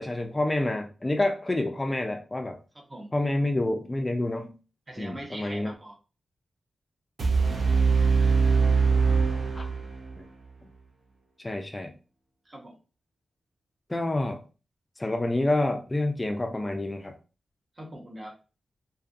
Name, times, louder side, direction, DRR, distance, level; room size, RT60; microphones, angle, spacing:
voice 1, 0.0-2.6 3.1-4.5 5.0-5.7 9.5-9.7 10.2-10.3 11.4-11.9 13.9-14.4 15.0-17.2, left 1 dB, 20° left, 4 dB, 0.3 m, -28 dB
voice 2, 2.7-3.1 4.9-6.0 12.4-12.8 17.7-18.4, right 1 dB, 35° right, 1 dB, 0.7 m, -42 dB
sound 1, 7.2-10.2, right 5 dB, 70° right, 0.5 m, -22 dB
2.6 x 2.4 x 2.5 m, 0.34 s
wide cardioid pair, 100°, 0 cm